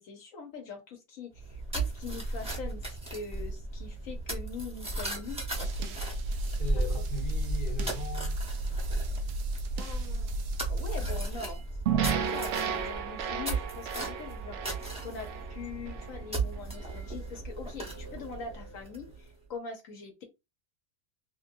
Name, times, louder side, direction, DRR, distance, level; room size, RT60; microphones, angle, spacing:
voice 1, 0.0-6.4 9.8-10.3 10.7-20.2, left 5 dB, 70° left, 1.1 m, -43 dB
sound 1, 1.3-19.3, right 2 dB, 5° right, 0.8 m, -36 dB
sound 2, 5.5-11.3, right 1 dB, 90° right, 1.1 m, -34 dB
voice 2, 6.5-8.5 14.7-14.9, left 6 dB, 40° left, 0.9 m, -40 dB
sound 3, 11.9-16.2, right 8 dB, 65° right, 0.7 m, -33 dB
3.3 x 2.6 x 2.5 m
omnidirectional pair, 1.5 m